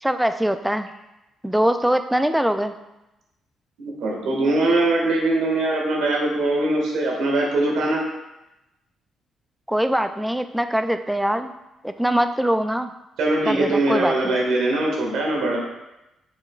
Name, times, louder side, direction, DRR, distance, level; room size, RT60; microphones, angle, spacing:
voice 1, 0.0-0.9 1.4-2.7 9.7-11.5 11.8-12.9 13.5-14.3, equal, 5° right, 9 dB, 0.3 m, -22 dB
voice 2, 3.8-8.0 13.2-15.6, right 2 dB, 90° right, -1 dB, 1.7 m, -22 dB
6.7 x 6.7 x 2.4 m, 0.96 s
cardioid pair, 135°, 0 cm